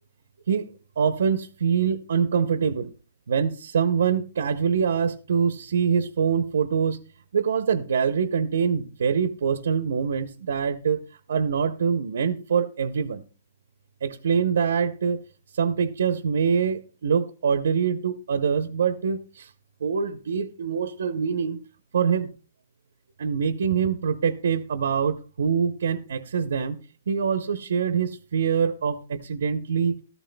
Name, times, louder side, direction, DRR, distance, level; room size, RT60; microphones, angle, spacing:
voice 1, 1.0-2.9 3.3-7.0 7.3-11.0 11.3-13.2 14.0-15.2 15.5-19.5 19.8-21.6 21.9-22.3 23.2-26.8 27.1-29.9, right 6 dB, 70° right, 0.8 m, -24 dB
14.0 x 13.5 x 2.2 m
hypercardioid pair, 180°, 0 cm